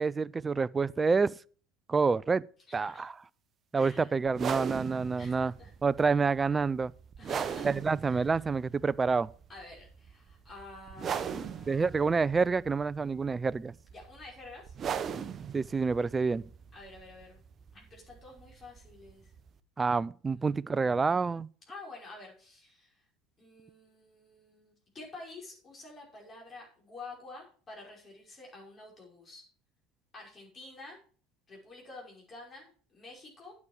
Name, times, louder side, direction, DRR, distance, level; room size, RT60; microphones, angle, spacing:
voice 1, 0.0-1.3 1.9-2.4 2.7-3.2 3.7-5.5 5.8-6.9 7.6-9.3 11.7-13.7 15.5-16.4 19.8-21.5, right 4 dB, 20° right, 0.4 m, -28 dB
voice 2, 2.7-3.1 3.8-4.1 5.2-5.7 7.2-7.7 8.1-8.4 9.5-12.0 13.9-14.7 16.7-17.4 17.7-19.3 20.3-21.0 21.7-23.0 23.4-29.4 30.1-31.0 31.5-33.5, left 3 dB, 30° left, 5.4 m, -49 dB
sound 1, 4.3-19.6, right 7 dB, 40° right, 0.8 m, -40 dB
9.6 x 8.5 x 4.7 m
hypercardioid pair, 75°, 0 cm